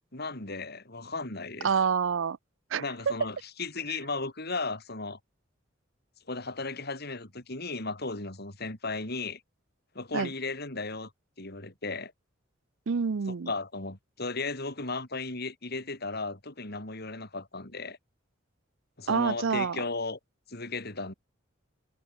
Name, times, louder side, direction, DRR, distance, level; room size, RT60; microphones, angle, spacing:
voice 1, 0.1-1.7 2.8-5.2 6.3-9.4 9.9-11.1 11.4-12.1 13.3-18.0 19.0-20.2 20.5-21.1, left 3 dB, 55° left, 4.5 m, -35 dB
voice 2, 1.6-2.4 2.7-2.8 10.1-10.3 12.9-13.5 19.1-19.8, right 6 dB, 70° right, 0.5 m, -27 dB
head